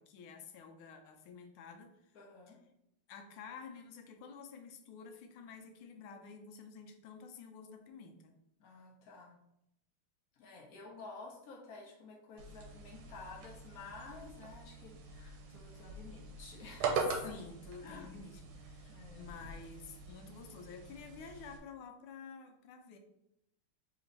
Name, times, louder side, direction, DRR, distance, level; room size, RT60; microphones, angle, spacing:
voice 1, 0.0-2.2 3.1-8.4 17.1-23.0, left 5 dB, 80° left, 5 dB, 1.5 m, -51 dB
voice 2, 2.1-2.6 8.6-9.3 10.4-17.4 17.8-18.1 18.9-19.3, left 4 dB, 55° left, 0 dB, 1.0 m, -51 dB
sound 1, 12.4-21.6, right 4 dB, 75° right, 1.4 m, -42 dB
4.2 x 3.0 x 3.9 m, 0.80 s
omnidirectional pair, 2.4 m